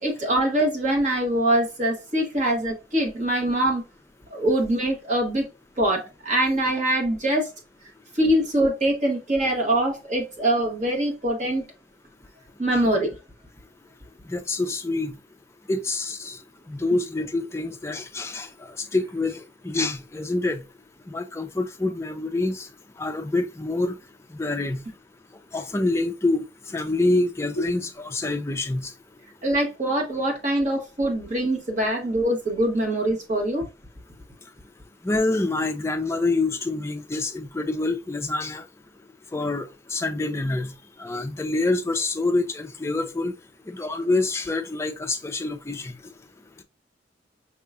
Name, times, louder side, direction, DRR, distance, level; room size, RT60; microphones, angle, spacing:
voice 1, 0.0-3.8 4.3-5.5 5.8-7.5 8.1-11.7 12.6-13.1 29.4-33.6, right 1 dB, 40° right, 1.4 m, -23 dB
voice 2, 14.3-15.1 15.7-16.4 16.7-18.5 18.8-20.6 21.1-22.7 23.0-24.0 24.3-24.8 25.5-28.9 35.0-38.6 39.3-40.7 41.0-43.3 43.7-45.9, left 2 dB, 15° left, 0.4 m, -26 dB
5.4 x 2.9 x 2.4 m
head